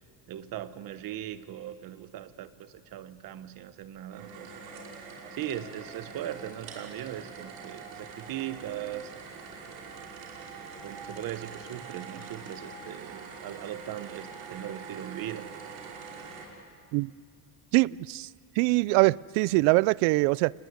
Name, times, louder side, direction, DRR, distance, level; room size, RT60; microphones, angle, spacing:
voice 1, 0.3-4.6 5.3-9.1 10.8-15.5, right 12 dB, 45° right, 1.3 m, -39 dB
sound 1, 4.1-16.5, right 5 dB, 70° right, 5.5 m, -44 dB
voice 2, 17.7-18.3 18.6-20.5, right 23 dB, 85° right, 0.6 m, -23 dB
29.0 x 19.5 x 9.7 m
cardioid pair, 165°, 47 cm